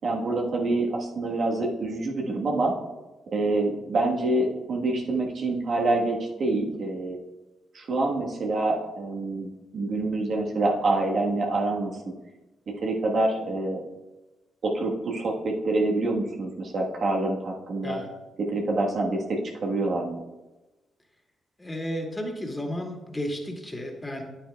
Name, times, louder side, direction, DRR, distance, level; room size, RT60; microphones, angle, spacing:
voice 1, 0.0-2.7 3.3-7.2 7.7-9.5 9.7-11.9 12.8-13.8 14.6-18.0 18.5-20.2, right 2 dB, 60° right, -1 dB, 1.3 m, -26 dB
voice 2, 21.6-24.2, equal, 15° left, 1 dB, 2.1 m, -33 dB
9.4 x 9.0 x 2.3 m, 1.1 s
supercardioid pair, 55°, 0 cm